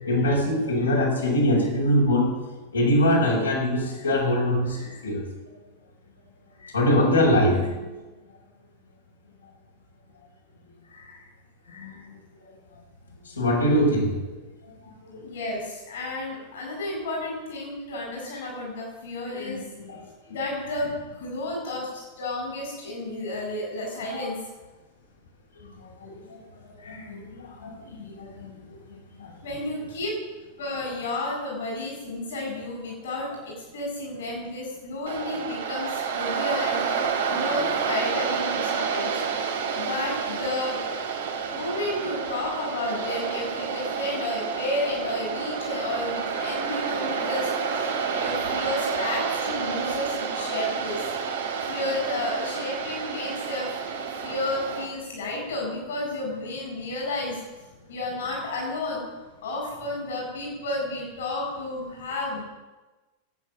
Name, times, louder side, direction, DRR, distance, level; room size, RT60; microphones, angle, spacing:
voice 1, 0.0-2.3 2.7-5.2 6.6-7.8 11.0-11.2 11.7-12.2 13.3-14.2 15.1-15.2 19.3-20.0 20.3-20.4 24.0-24.2 25.6-26.2 26.6-28.8 29.2-29.6, left 1 dB, 80° left, -3 dB, 5.4 m, -24 dB
voice 2, 15.2-19.6 20.3-24.4 29.4-30.2 30.6-39.1 39.7-40.9 41.5-47.9 48.1-53.7 54.2-57.4 57.9-59.0 59.4-62.4, left 2 dB, 60° left, -1 dB, 4.7 m, -32 dB
Waves surf, 35.1-54.8, right 6 dB, 65° right, 2.3 m, -29 dB
18.0 x 9.0 x 7.2 m, 1.2 s
figure-of-eight pair, 90°, 0 cm